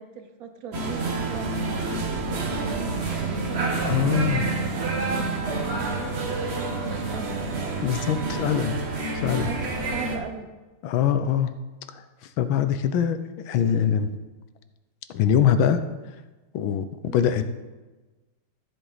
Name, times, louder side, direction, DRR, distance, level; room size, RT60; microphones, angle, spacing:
voice 1, 0.0-1.7 2.3-7.4 9.4-10.5 17.0-17.3, right 6 dB, 60° right, 7 dB, 1.0 m, -39 dB
sound 1, 0.7-10.2, right 3 dB, 40° right, 1.1 m, -28 dB
voice 2, 3.8-4.5 7.8-8.8 9.1-9.5 10.8-11.5 11.9-12.0 12.4-13.2 13.5-14.1 15.1-15.8 16.5-16.8 17.1-17.5, left 8 dB, 75° left, 10 dB, 1.5 m, -23 dB
13.0 x 7.9 x 4.0 m, 1.2 s
omnidirectional pair, 2.3 m